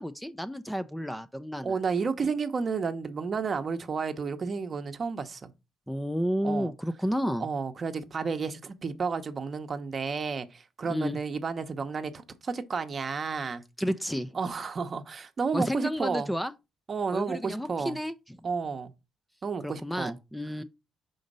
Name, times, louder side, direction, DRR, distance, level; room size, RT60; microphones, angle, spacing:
voice 1, 0.0-1.8 5.9-7.5 10.9-11.2 13.8-14.4 15.5-16.5 17.1-18.1 19.6-20.6, equal, 5° left, 0.4 m, -31 dB
voice 2, 1.6-5.5 6.4-6.7 7.4-13.6 14.3-16.3 16.9-18.0 18.4-18.9 19.4-20.2, right 5 dB, 40° right, 0.8 m, -31 dB
5.0 x 3.9 x 5.3 m
cardioid pair, 90°, 0 cm